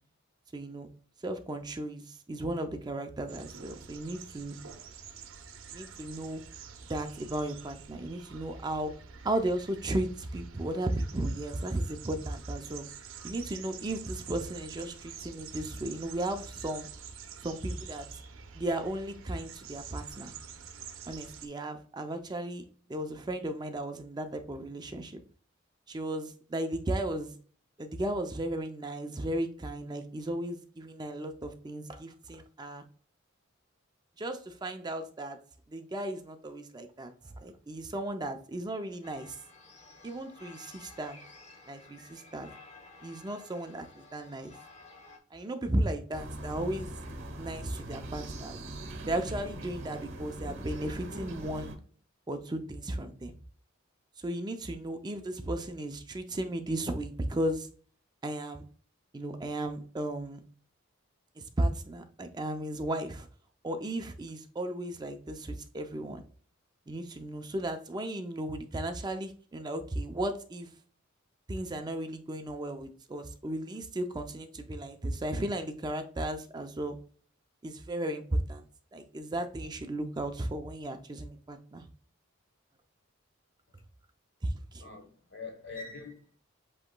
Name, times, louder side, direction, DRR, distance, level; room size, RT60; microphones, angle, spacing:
voice 1, 0.5-0.9 1.2-4.6 5.7-6.4 6.9-8.9 9.2-12.9 13.2-16.9 17.4-18.1 18.5-20.3 21.1-22.6 22.9-25.2 25.9-27.3 27.8-32.8 34.2-35.4 35.7-37.1 37.4-39.4 40.0-41.2 41.7-42.5 43.0-44.5 45.3-46.9 47.4-48.6 49.0-51.7 52.3-53.3 54.2-57.7 58.2-58.7 59.1-60.4 61.4-63.3 63.6-66.2 66.9-70.7 71.5-77.0 77.6-78.6 78.9-81.8 84.4-84.8, right 1 dB, 20° right, 0.4 m, -35 dB
sound 1, 3.3-21.5, right 6 dB, 85° right, 0.6 m, -47 dB
sound 2, 39.0-45.2, left 3 dB, 35° left, 0.8 m, -53 dB
sound 3, 46.1-51.8, right 1 dB, 60° right, 1.0 m, -41 dB
voice 2, 84.8-86.4, left 4 dB, 60° left, 1.0 m, -44 dB
7.6 x 2.9 x 2.2 m
head